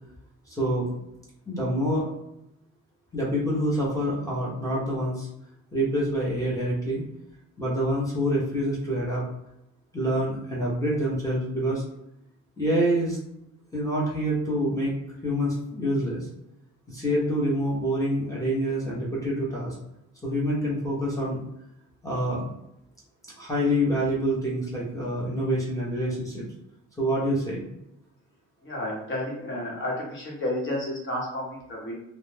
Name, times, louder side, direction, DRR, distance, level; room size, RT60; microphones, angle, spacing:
voice 1, 0.5-0.9 1.5-2.1 3.1-5.3 5.7-7.0 7.6-9.2 9.9-11.8 12.6-13.2 13.7-14.9 15.2-16.3 16.9-19.8 20.2-21.4 22.0-22.5 23.4-26.4 27.0-27.7, equal, 10° left, -6 dB, 0.9 m, -26 dB
voice 2, 28.6-31.9, left 1 dB, 40° left, -3 dB, 1.1 m, -31 dB
2.4 x 2.1 x 3.3 m, 0.82 s
cardioid pair, 90°, 30 cm